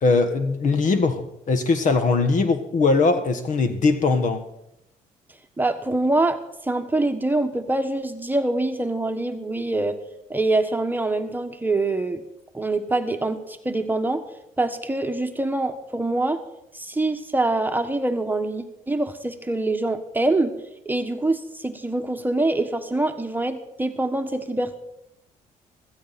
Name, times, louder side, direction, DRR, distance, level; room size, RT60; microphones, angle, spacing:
voice 1, 0.0-4.4, left 3 dB, 55° left, 1.5 m, -21 dB
voice 2, 5.6-6.4 6.6-9.9 10.3-12.2 12.5-14.2 14.6-16.4 16.7-20.5 20.8-24.8, right 2 dB, 10° right, 1.3 m, -24 dB
16.0 x 14.0 x 4.2 m
supercardioid pair, 75°, 15 cm